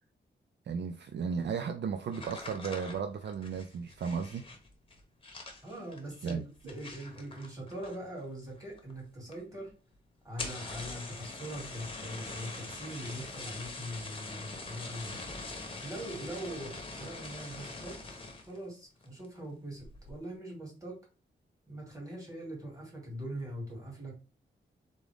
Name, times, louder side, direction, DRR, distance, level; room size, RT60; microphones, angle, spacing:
voice 1, 0.7-4.4 6.2-6.4, right 6 dB, 65° right, 0.4 m, -34 dB
sound 1, 2.1-8.2 8.5-9.0 9.3-9.4 9.7-9.8 10.2-18.6 19.0-19.4 19.8-20.2, left 3 dB, 30° left, 0.9 m, -43 dB
voice 2, 5.6-9.7 10.2-15.3 15.8-18.0 18.4-21.0 21.7-24.2, right 1 dB, 15° right, 2.4 m, -42 dB
3.7 x 3.7 x 3.4 m
wide cardioid pair, 150°, 20 cm